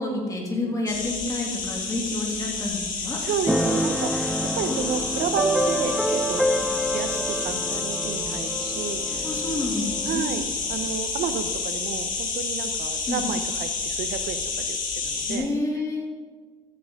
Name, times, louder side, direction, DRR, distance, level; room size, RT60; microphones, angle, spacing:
voice 1, 0.0-3.2 4.7-4.8 9.2-10.3 13.1-13.2 15.2-16.1, left 2 dB, 20° left, -1 dB, 2.9 m, -29 dB
Atmos Distant Cicadas Tunisia, 0.9-15.4, left 4 dB, 50° left, 2.4 m, -30 dB
voice 2, 3.2-6.4 6.9-9.3 10.0-10.4 10.7-15.5, right 7 dB, 75° right, 9 dB, 0.9 m, -31 dB
Keyboard (musical), 3.5-11.0, right 1 dB, ahead, 0.4 m, -28 dB
14.0 x 8.8 x 3.8 m, 1.5 s
cardioid pair, 110°, 17 cm